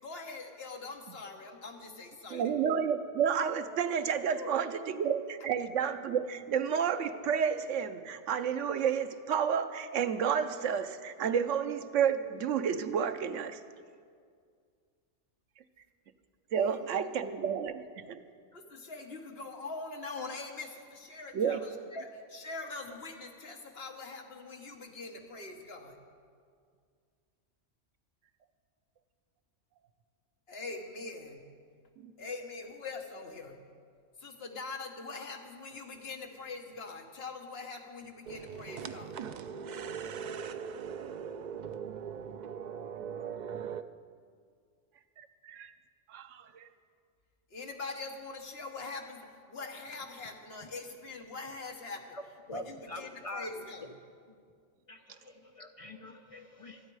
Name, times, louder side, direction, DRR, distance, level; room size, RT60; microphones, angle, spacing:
voice 1, 0.0-2.5 4.3-4.5 16.5-16.9 18.5-26.0 30.5-31.4 32.2-33.6 34.2-39.2 47.5-52.2 52.5-53.9, left 3 dB, 55° left, 3 dB, 1.6 m, -43 dB
voice 2, 2.3-13.6 16.5-18.2 21.3-21.7 32.0-32.1 45.2-45.7 46.1-46.7, right 7 dB, 80° right, 9 dB, 1.1 m, -31 dB
sound 1, 38.3-43.8, right 7 dB, 65° right, 0.4 m, -40 dB
voice 3, 52.5-53.5 53.8-53.9 54.9-56.9, left 1 dB, 35° left, 5 dB, 0.6 m, -44 dB
25.5 x 9.0 x 4.8 m, 2.1 s
omnidirectional pair, 1.3 m